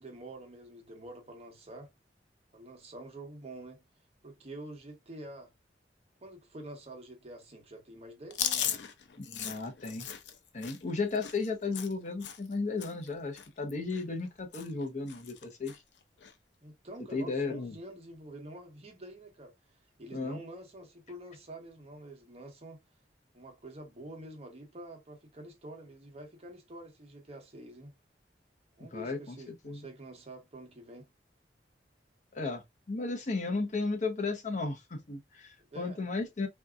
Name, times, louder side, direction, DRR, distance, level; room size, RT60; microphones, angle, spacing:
voice 1, 0.0-1.9 2.5-3.8 4.2-5.5 6.2-8.8 16.6-22.8 23.3-27.9 28.7-31.1 35.7-36.0, right 1 dB, 35° right, 1.0 m, -47 dB
Chewing mastication, 8.3-12.5 12.8-13.1 13.4-14.3 14.5-14.8 15.1-15.8 16.2-16.3 17.4-17.8, left 9 dB, 85° left, 0.5 m, -37 dB
voice 2, 9.2-10.1 10.5-15.7 17.1-17.5 20.1-20.4 28.8-29.8 32.3-36.5, left 3 dB, 45° left, 0.7 m, -34 dB
3.5 x 2.7 x 2.3 m
head